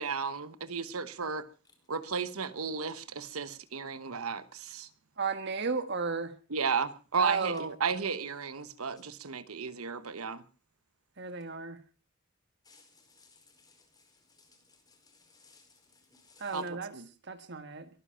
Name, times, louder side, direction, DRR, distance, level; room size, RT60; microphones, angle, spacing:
voice 1, 0.0-1.5 1.9-4.9 6.5-10.4 16.5-17.1, right 5 dB, 90° right, 1.1 m, -34 dB
voice 2, 5.2-6.3 7.2-7.7 11.2-11.8 16.4-16.9 17.3-17.9, right 4 dB, 55° right, 1.4 m, -33 dB
voice 3, 12.6-16.6, left 4 dB, 20° left, 4.8 m, -62 dB
23.0 x 10.0 x 5.7 m
head